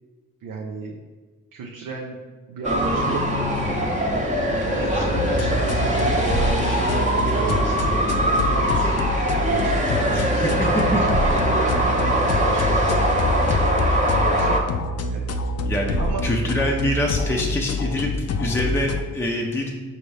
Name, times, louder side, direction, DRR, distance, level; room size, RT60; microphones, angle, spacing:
voice 1, 0.4-1.0 1.5-2.2 2.5-3.9 4.6-9.0 9.5-11.7 12.0-14.6 15.1-15.2 16.0-16.5, right 4 dB, 75° right, 0 dB, 0.6 m, -34 dB
sound 1, 2.6-14.6, right 1 dB, 20° right, 0.9 m, -22 dB
sound 2, 5.1-19.0, left 2 dB, 50° left, 0.4 m, -26 dB
voice 2, 10.1-11.0 15.6-18.1 18.4-19.7, left 1 dB, 10° left, -1 dB, 0.6 m, -25 dB
5.0 x 2.6 x 3.2 m, 1.4 s
supercardioid pair, 50°, 33 cm